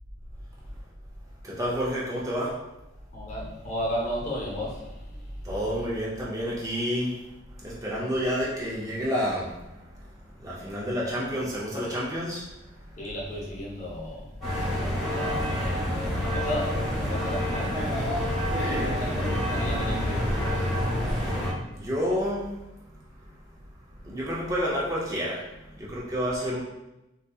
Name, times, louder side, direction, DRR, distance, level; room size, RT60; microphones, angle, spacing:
voice 1, 1.4-2.6 5.4-7.2 7.5-13.0 18.4-18.9 21.0-23.6 23.9-26.6, equal, 15° right, -5 dB, 0.5 m, -30 dB
voice 2, 3.1-5.4 13.0-17.9 18.9-21.1, equal, 40° left, -4 dB, 0.8 m, -34 dB
sound 1, 14.4-21.5, equal, ahead, 1.1 m, -27 dB
3.7 x 2.7 x 2.3 m, 0.95 s
head